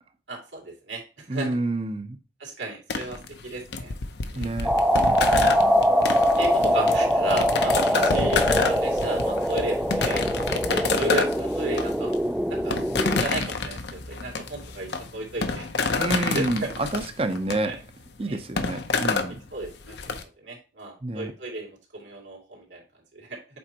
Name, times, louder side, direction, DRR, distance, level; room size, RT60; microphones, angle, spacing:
voice 1, 0.3-1.6 2.4-3.9 4.3-4.5 6.4-10.2 10.7-12.1 12.5-12.8 13.2-15.7 16.2-16.7 17.6-17.8 18.2-18.4 19.5-22.8 23.1-23.4, right 2 dB, 75° right, -1 dB, 2.4 m, -34 dB
voice 2, 1.3-2.2 4.3-4.7 6.6-6.7 16.0-17.8 18.2-19.4 21.0-21.3, right 2 dB, 30° right, 9 dB, 0.7 m, -28 dB
sound 1, 2.9-20.2, left 4 dB, 65° left, 0.7 m, -29 dB
sound 2, 4.6-13.2, equal, 5° right, 0.3 m, -23 dB
7.8 x 4.4 x 2.9 m, 0.31 s
head